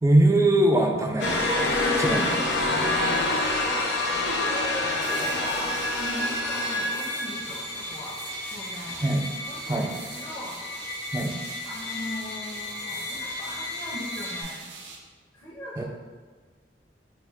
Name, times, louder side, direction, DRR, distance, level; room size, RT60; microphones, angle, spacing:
voice 1, 0.0-1.7 2.0-2.3 9.0-9.2 9.7-9.9 11.1-11.3 15.8-15.9, right 1 dB, 15° right, 2 dB, 0.3 m, -22 dB
sound 1, 1.2-14.4, left 2 dB, 90° left, 0.5 m, -28 dB
voice 2, 4.2-8.2 8.5-9.0 9.4-10.6 11.2-11.3 11.6-14.7 15.3-15.8, equal, 30° left, -7 dB, 0.7 m, -38 dB
sound 2, 5.0-15.0, right 4 dB, 80° right, 0.5 m, -43 dB
3.1 x 2.5 x 3.5 m, 1.5 s
head